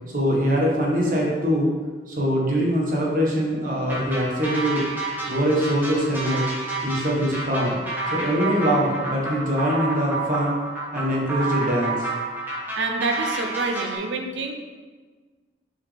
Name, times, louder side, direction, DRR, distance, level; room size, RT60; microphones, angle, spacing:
voice 1, 0.1-1.7 2.1-4.8 5.3-6.4 6.8-7.8 8.1-10.6 10.9-12.1, equal, 50° right, -3 dB, 1.2 m, -23 dB
sound 1, 3.9-14.0, right 3 dB, 10° right, 1.2 m, -29 dB
voice 2, 12.8-14.5, right 3 dB, 85° right, 4 dB, 0.6 m, -27 dB
5.7 x 4.8 x 3.4 m, 1.4 s
head